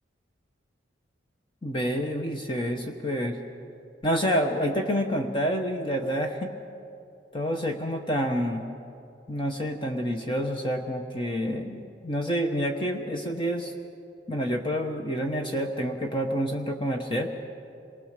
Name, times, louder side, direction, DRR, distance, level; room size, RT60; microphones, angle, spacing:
voice 1, 1.6-3.4 4.0-6.5 7.3-8.6 9.3-13.7 14.3-17.3, equal, 25° left, 3 dB, 1.1 m, -28 dB
26.5 x 19.5 x 6.7 m, 2.5 s
head